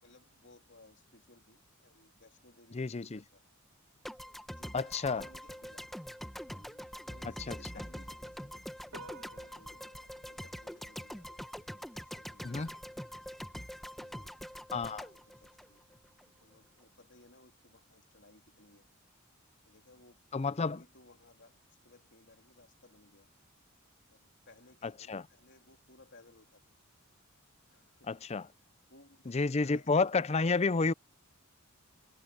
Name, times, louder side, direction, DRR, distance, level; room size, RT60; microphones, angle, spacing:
voice 1, 0.0-3.4 4.5-5.9 6.4-9.8 10.2-12.7 14.0-14.4 14.7-16.0 16.4-18.9 19.6-23.3 24.1-26.6 27.7-28.2 28.9-29.9, left 2 dB, 55° left, 3.6 m, -61 dB
voice 2, 2.7-3.2 4.7-5.2 7.5-7.6 12.4-12.7 14.7-15.0 20.3-20.8 25.1-25.2 28.1-28.4 29.3-30.9, left 4 dB, 30° left, 0.5 m, -30 dB
sound 1, 4.0-16.2, equal, ahead, 1.0 m, -44 dB
Piano, 8.9-16.8, right 3 dB, 70° right, 2.4 m, -59 dB
head